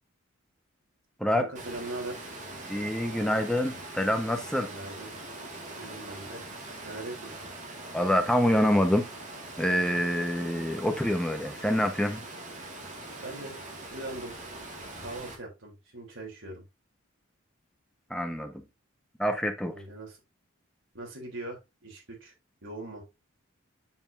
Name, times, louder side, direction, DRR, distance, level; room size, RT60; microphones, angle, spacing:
voice 1, 1.3-2.2 4.6-5.1 5.7-6.4 6.8-7.4 13.2-13.6 13.9-14.4 15.0-16.6 19.6-20.2 20.9-22.3 22.6-23.0, right 2 dB, 65° right, 3.3 m, -40 dB
Water, 1.5-15.3, right 2 dB, 40° right, 2.0 m, -42 dB
voice 2, 2.7-4.7 7.9-9.1 9.6-12.2 18.1-18.5 19.2-19.7, equal, 5° left, 1.1 m, -26 dB
9.2 x 5.2 x 2.6 m
head